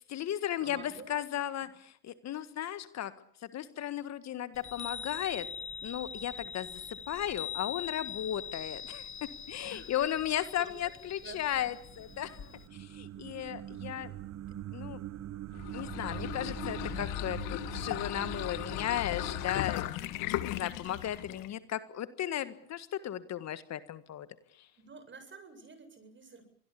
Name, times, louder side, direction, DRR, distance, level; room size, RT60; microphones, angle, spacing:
voice 1, 0.1-0.8 1.1-1.7 2.0-3.1 3.5-5.5 5.8-12.4 12.7-14.1 14.7-15.0 15.7-24.3, left 11 dB, 55° left, 13 dB, 1.7 m, -35 dB
voice 2, 0.6-1.1 9.6-10.9 11.2-11.7 24.7-26.4, right 4 dB, 35° right, 9 dB, 7.8 m, -50 dB
Chime, 4.5-12.7, left 7 dB, 40° left, 1.4 m, -43 dB
sound 1, 11.4-20.7, right 12 dB, 50° right, 1.2 m, -44 dB
sound 2, 15.5-21.6, left 16 dB, 70° left, 1.7 m, -37 dB
25.0 x 20.5 x 8.5 m, 0.63 s
hypercardioid pair, 75°, 33 cm